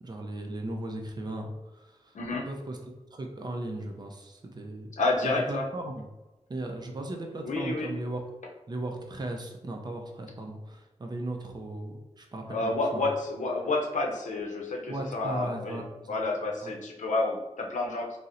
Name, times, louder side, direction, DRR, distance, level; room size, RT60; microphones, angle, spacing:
voice 1, 0.0-2.2 2.5-4.9 5.2-6.1 6.5-8.2 8.7-13.1 14.9-16.2 16.6-16.7, right 1 dB, 35° right, 2 dB, 0.4 m, -37 dB
voice 2, 2.1-2.4 5.0-5.6 7.4-7.9 12.5-15.8 16.1-18.2, left 2 dB, 90° left, 1 dB, 0.5 m, -29 dB
4.0 x 2.0 x 2.5 m, 1.0 s
wide cardioid pair, 135°, 12 cm